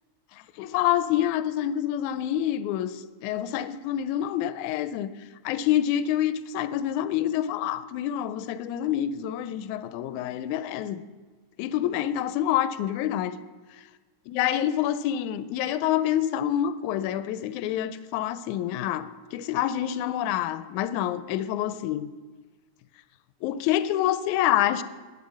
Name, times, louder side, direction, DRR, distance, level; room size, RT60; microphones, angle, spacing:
voice 1, 0.6-5.1 5.4-11.0 11.6-13.4 14.3-22.1 23.4-24.8, left 11 dB, 85° left, 13 dB, 2.0 m, -27 dB
10.5 x 9.5 x 6.3 m, 1.3 s
omnidirectional pair, 3.4 m